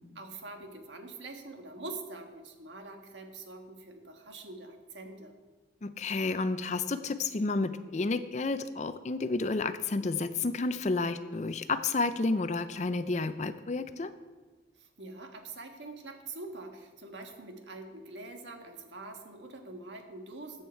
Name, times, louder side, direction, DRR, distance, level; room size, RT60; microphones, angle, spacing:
voice 1, 0.1-5.4 14.8-20.6, right 2 dB, 80° right, 4 dB, 1.5 m, -44 dB
voice 2, 5.8-14.1, left 3 dB, 40° left, 11 dB, 0.5 m, -31 dB
14.0 x 8.0 x 4.5 m, 1.3 s
head